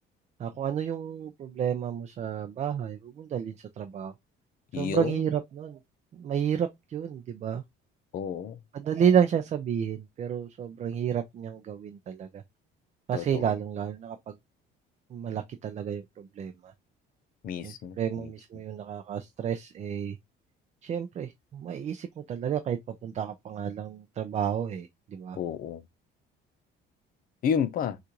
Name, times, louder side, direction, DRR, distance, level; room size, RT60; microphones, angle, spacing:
voice 1, 0.4-4.1 4.8-5.8 6.2-7.6 8.7-12.4 13.1-14.3 15.1-16.7 17.6-20.2 20.8-25.4, right 8 dB, 35° right, 0.5 m, -31 dB
voice 2, 4.7-5.3 8.1-8.6 13.1-13.5 17.4-18.3 25.4-25.8 27.4-28.0, left 7 dB, 45° left, 0.7 m, -31 dB
6.5 x 2.5 x 3.0 m
cardioid pair, 165°, 20 cm